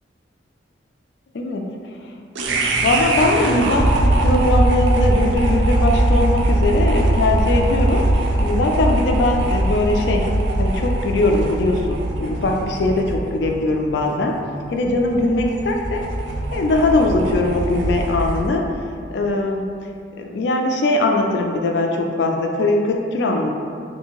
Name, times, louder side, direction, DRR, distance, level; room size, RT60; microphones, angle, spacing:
voice 1, 1.3-1.8 2.8-10.3 10.6-14.4 14.7-16.0 16.5-18.7 19.1-19.8 20.2-23.6, left 2 dB, 70° left, 2 dB, 0.3 m, -20 dB
sound 1, 2.3-18.6, right 1 dB, 80° right, 0.3 m, -21 dB
2.7 x 2.5 x 2.9 m, 2.3 s
head